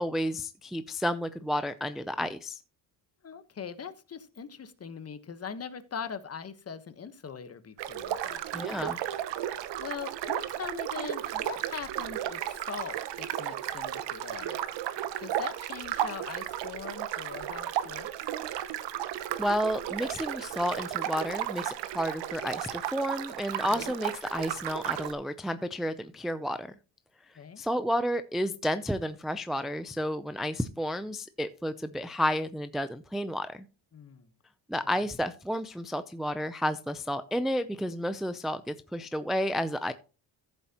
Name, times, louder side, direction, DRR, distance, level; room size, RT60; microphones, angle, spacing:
voice 1, 0.0-2.6 8.5-9.0 19.4-26.7 27.6-33.7 34.7-39.9, equal, ahead, 0.4 m, -31 dB
voice 2, 3.2-9.0 9.4-14.6 15.2-18.1 23.7-23.9 27.4-27.6 33.9-34.3 34.8-34.9, left 6 dB, 35° left, 1.1 m, -41 dB
sound 1, 7.8-25.1, right 12 dB, 90° right, 1.0 m, -34 dB
14.5 x 7.5 x 2.9 m
cardioid pair, 120°, 42 cm